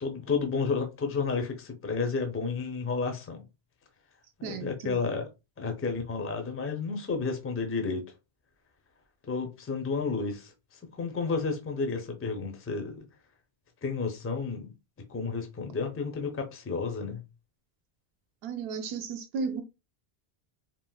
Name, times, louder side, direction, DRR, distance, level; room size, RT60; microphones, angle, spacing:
voice 1, 0.0-3.4 4.4-5.3 5.6-8.0 9.3-13.1 13.8-14.7 15.1-17.2, left 4 dB, 25° left, 0.3 m, -31 dB
voice 2, 4.4-5.0 18.4-19.6, right 5 dB, 80° right, 0.8 m, -34 dB
3.6 x 2.1 x 2.2 m
omnidirectional pair, 1.0 m